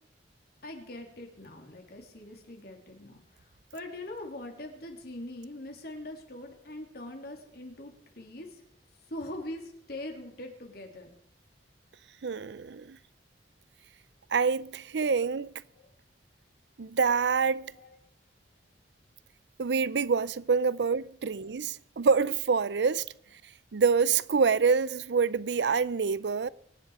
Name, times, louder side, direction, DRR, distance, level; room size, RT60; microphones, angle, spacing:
voice 1, 0.6-3.4 3.7-8.6 9.1-11.1 17.7-18.0 21.3-21.4, left 1 dB, 60° left, 3.2 m, -42 dB
voice 2, 12.2-13.0 14.3-15.5 16.8-17.7 19.6-23.1 23.7-26.5, right 5 dB, 75° right, 0.5 m, -26 dB
23.5 x 10.0 x 4.9 m
head